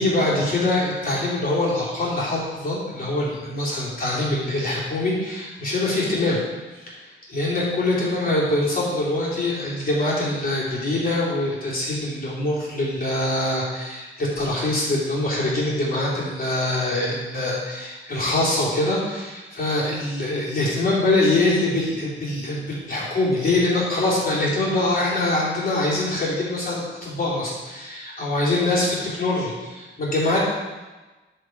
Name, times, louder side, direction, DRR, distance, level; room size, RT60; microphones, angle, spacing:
voice 1, 0.0-6.4 6.9-7.0 7.3-30.4, left 2 dB, 45° left, -7 dB, 3.4 m, -24 dB
14.0 x 5.1 x 4.7 m, 1.2 s
wide cardioid pair, 165°, 20 cm